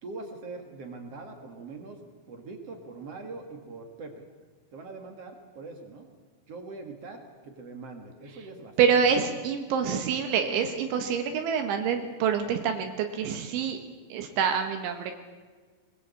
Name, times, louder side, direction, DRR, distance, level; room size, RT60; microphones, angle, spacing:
voice 1, 0.0-2.0 2.3-4.3 4.7-6.1 6.5-9.0, right 3 dB, 50° right, 4 dB, 1.9 m, -42 dB
voice 2, 8.8-13.8 14.1-15.1, right 7 dB, 75° right, 5 dB, 3.6 m, -26 dB
22.5 x 20.5 x 8.4 m, 1.5 s
omnidirectional pair, 5.6 m